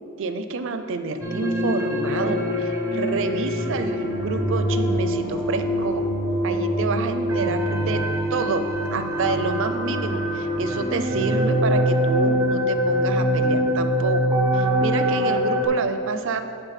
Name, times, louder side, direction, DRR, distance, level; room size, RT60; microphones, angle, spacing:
voice 1, 0.2-6.1 6.4-8.0 8.3-8.6 8.9-14.2 14.5-16.4, right 3 dB, 60° right, 9 dB, 0.4 m, -28 dB
sound 1, 1.2-15.7, equal, 15° right, 0.7 m, -24 dB
sound 2, 4.0-9.3, equal, 45° left, 1.4 m, -39 dB
8.1 x 3.8 x 5.8 m, 2.6 s
head